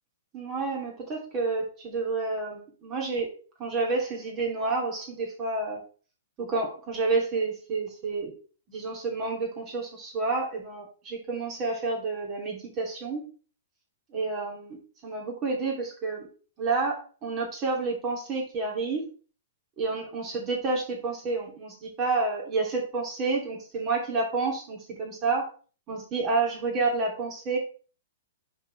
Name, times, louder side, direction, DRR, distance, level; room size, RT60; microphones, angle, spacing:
voice 1, 0.3-3.3 3.6-5.8 6.4-8.3 8.7-13.2 14.1-16.3 16.6-19.1 19.8-25.5 25.9-27.6, right 3 dB, 30° right, -1 dB, 2.8 m, -29 dB
10.5 x 4.2 x 3.3 m, 0.38 s
hypercardioid pair, 135°, 0 cm